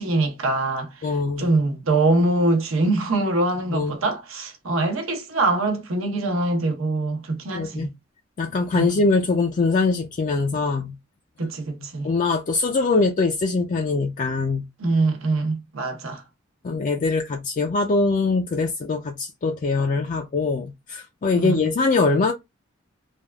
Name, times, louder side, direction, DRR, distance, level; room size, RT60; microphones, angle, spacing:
voice 1, 0.0-0.9 1.4-7.9 8.7-8.9 11.4-12.1 14.8-16.2 21.3-21.6, right 2 dB, 80° right, 0.9 m, -23 dB
voice 2, 1.0-1.5 3.7-4.0 7.5-7.9 8.4-10.9 12.0-14.6 16.6-22.3, left 3 dB, 40° left, 0.4 m, -22 dB
3.4 x 2.3 x 2.2 m
head